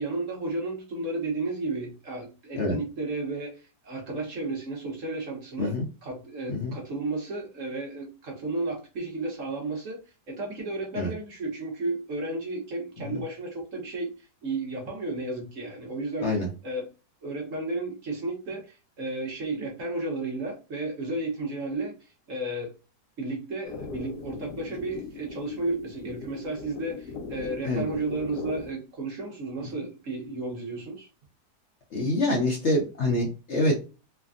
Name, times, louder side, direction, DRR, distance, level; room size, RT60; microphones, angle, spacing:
voice 1, 0.0-5.7 6.0-10.0 10.3-16.9 17.2-21.9 22.3-22.7 23.2-31.1, right 2 dB, 55° right, -1 dB, 1.2 m, -33 dB
sound 1, 23.6-28.7, left 4 dB, 80° left, 1.2 m, -39 dB
voice 2, 31.9-33.9, left 1 dB, 55° left, -1 dB, 0.8 m, -26 dB
3.3 x 2.2 x 2.4 m, 0.32 s
omnidirectional pair, 1.8 m